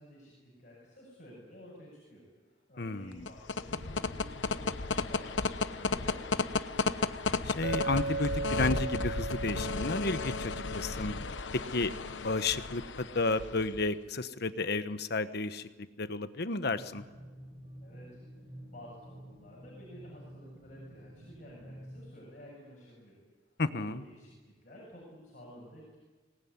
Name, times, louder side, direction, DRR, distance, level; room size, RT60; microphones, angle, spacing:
voice 1, 0.0-6.3 17.8-18.2 18.7-23.2 23.8-26.0, equal, 45° left, -5 dB, 7.6 m, -52 dB
voice 2, 2.8-3.3 7.5-11.2 11.7-11.9 12.2-15.7 16.0-17.0 23.6-24.0, left 3 dB, 60° left, 11 dB, 1.2 m, -32 dB
sound 1, 3.1-13.9, left 4 dB, 80° left, 1.0 m, -34 dB
Chink clink, 7.6-11.8, right 3 dB, 80° right, 0.8 m, -38 dB
dark haunting aquatic underwater synth bass with noise, 16.7-22.1, equal, 40° right, 4.9 m, -50 dB
24.5 x 19.5 x 9.7 m, 1.3 s
head